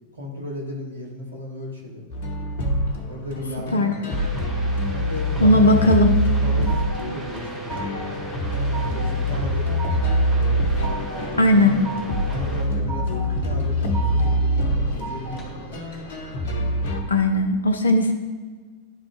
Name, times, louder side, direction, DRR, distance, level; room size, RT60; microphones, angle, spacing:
voice 1, 0.1-2.0 3.1-4.1 4.9-5.9 6.3-8.2 8.7-9.8 10.8-11.9 12.2-13.1 13.4-15.8, left 1 dB, 80° right, -2 dB, 1.6 m, -35 dB
sound 1, 2.1-17.0, equal, 55° left, 1.0 m, -25 dB
sound 2, 4.1-12.6, right 2 dB, 15° right, 1.7 m, -36 dB
voice 2, 5.4-6.1 11.4-11.8 17.1-18.1, left 1 dB, 75° left, 6 dB, 0.7 m, -17 dB
sound 3, 6.1-7.0 7.4-8.1 8.4-9.1 9.5-10.2 10.5-11.2 11.6-12.2 12.6-13.3 13.6-14.3 14.7-15.5, right 4 dB, 20° left, 1.9 m, -37 dB
10.5 x 3.8 x 3.6 m, 1.4 s
figure-of-eight pair, 90°, 0 cm